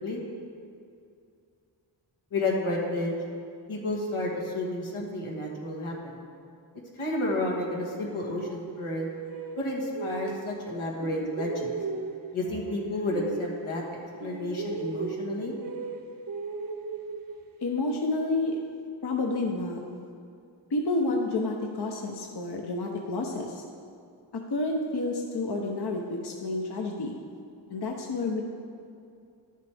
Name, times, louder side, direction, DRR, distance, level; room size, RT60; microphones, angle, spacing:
voice 1, 2.3-3.1 3.7-6.1 7.0-9.1 9.6-11.7 12.3-13.8 14.2-15.5, left 1 dB, 85° left, -2 dB, 1.7 m, -31 dB
sound 1, 7.9-10.7 11.0-13.9 14.2-17.7, right 4 dB, 45° right, 0.8 m, -37 dB
voice 2, 17.6-18.6 19.0-19.8 20.7-23.6 24.5-27.1 27.7-28.4, left 2 dB, 50° left, 1 dB, 0.9 m, -29 dB
11.5 x 6.6 x 3.5 m, 2.4 s
cardioid pair, 50°, 49 cm